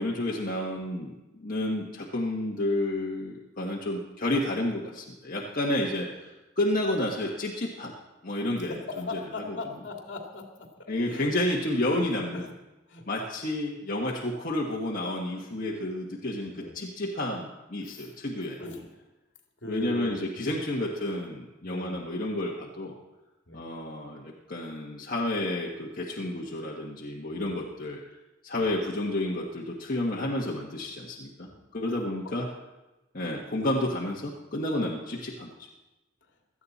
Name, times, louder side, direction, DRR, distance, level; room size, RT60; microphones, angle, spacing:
voice 1, 0.0-6.3 6.6-7.9 8.2-9.2 9.5-9.6 10.9-12.5 13.1-18.6 19.6-22.9 23.5-28.0 28.4-32.5 33.1-35.7, left 1 dB, 45° left, -4 dB, 1.5 m, -30 dB
voice 2, 8.7-11.3 12.3-12.4 12.9-13.0 16.4-16.8 17.8-18.2 18.6-19.1 19.6-20.4 21.6-22.1 23.5-23.7 27.3-27.8 28.5-28.8 31.4-32.0, left 2 dB, 65° left, 1 dB, 2.4 m, -40 dB
17.5 x 13.5 x 4.2 m, 1.0 s
head